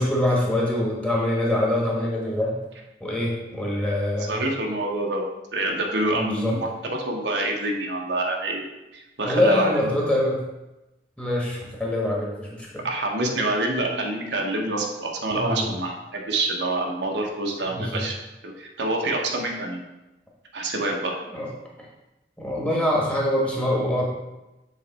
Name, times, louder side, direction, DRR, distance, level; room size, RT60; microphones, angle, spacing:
voice 1, 0.0-2.5 3.0-4.4 6.1-6.6 9.2-10.4 11.2-12.8 15.3-15.7 17.7-18.0 21.3-21.5 22.4-24.0, left 1 dB, 5° left, -4 dB, 1.2 m, -24 dB
voice 2, 4.2-9.9 12.8-18.2 18.4-19.8 20.5-21.1, right 2 dB, 90° right, 0 dB, 1.0 m, -27 dB
7.3 x 3.3 x 4.1 m, 1.0 s
head